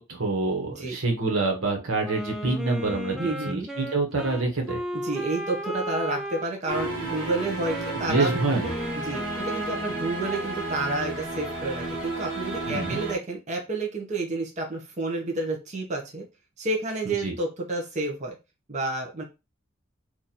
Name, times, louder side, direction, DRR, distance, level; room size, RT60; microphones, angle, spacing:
voice 1, 0.0-4.8 7.9-8.7 12.7-13.0 17.0-17.3, right 3 dB, 85° right, 1 dB, 1.2 m, -27 dB
Wind instrument woodwind instrument, 2.0-10.5, equal, ahead, 0.4 m, -35 dB
voice 2, 3.2-3.7 4.9-8.3 9.0-16.2 16.6-18.4 18.7-19.2, right 2 dB, 35° right, 0 dB, 0.8 m, -30 dB
sound 1, 6.7-13.2, right 2 dB, 60° right, 1.4 m, -33 dB
3.0 x 2.5 x 4.1 m, 0.26 s
head